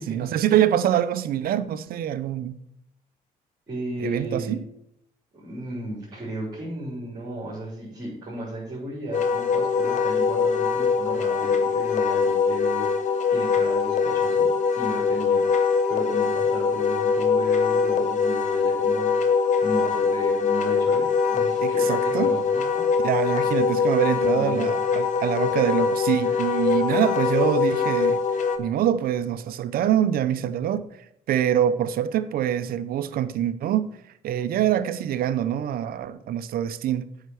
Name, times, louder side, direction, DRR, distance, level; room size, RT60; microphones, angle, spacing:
voice 1, 0.1-2.6 4.0-4.6 21.6-22.3 23.0-28.2 28.6-30.8 31.3-33.9 34.2-37.1, right 10 dB, 60° right, 0.6 m, -24 dB
voice 2, 3.7-4.6 5.3-22.9 24.3-24.7 26.2-27.0, right 1 dB, 25° right, 3.5 m, -35 dB
Wind instrument woodwind instrument, 9.1-28.6, left 5 dB, 45° left, 1.0 m, -23 dB
8.0 x 5.7 x 6.2 m
cardioid pair, 110°, 17 cm